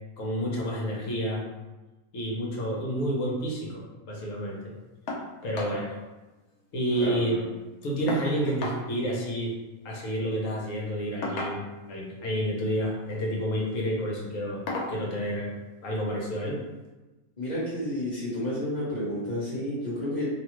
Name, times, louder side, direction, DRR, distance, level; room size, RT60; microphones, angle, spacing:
voice 1, 0.2-1.4 2.1-3.8 4.1-4.6 5.4-6.0 6.7-7.4 7.8-9.5 9.8-11.6 11.9-14.6 14.9-15.5 15.8-16.6, equal, 65° left, -3 dB, 1.1 m, -29 dB
sound 1, 5.1-5.3 5.5-5.8 6.1-6.2 6.5-7.2 8.1-8.8 10.1-10.3 11.2-11.9 12.9-13.2 13.7-13.9 14.7-15.0 16.2-16.3 16.8-16.9, left 2 dB, 90° left, 1.1 m, -35 dB
voice 2, 7.0-7.4 17.4-20.3, left 1 dB, 30° left, -9 dB, 1.2 m, -31 dB
2.8 x 2.3 x 3.0 m, 1.1 s
omnidirectional pair, 1.6 m